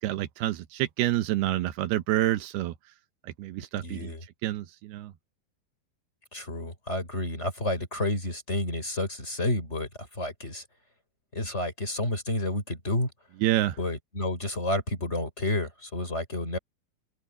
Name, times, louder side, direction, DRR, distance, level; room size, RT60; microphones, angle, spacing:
voice 1, 0.0-2.7 3.2-4.1 4.4-5.1 13.4-13.8, right 14 dB, 75° right, 2.6 m, -28 dB
voice 2, 3.7-4.2 6.3-10.6 11.3-13.1 13.8-16.6, left 1 dB, 15° left, 4.9 m, -30 dB
open air
omnidirectional pair, 5.3 m